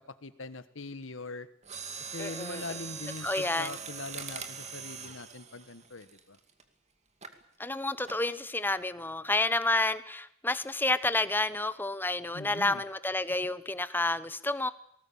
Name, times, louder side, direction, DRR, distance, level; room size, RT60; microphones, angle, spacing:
voice 1, 0.0-1.5 2.0-6.4 12.3-12.8, left 3 dB, 70° left, 13 dB, 1.5 m, -42 dB
Mechanisms, 1.6-6.6 7.2-7.4 8.1-8.4 8.7-8.8, right 6 dB, 35° right, 2.3 m, -42 dB
voice 2, 2.2-2.6 3.2-3.7 7.6-14.7, left 2 dB, 10° left, 14 dB, 1.0 m, -30 dB
19.5 x 19.0 x 8.8 m, 0.71 s
head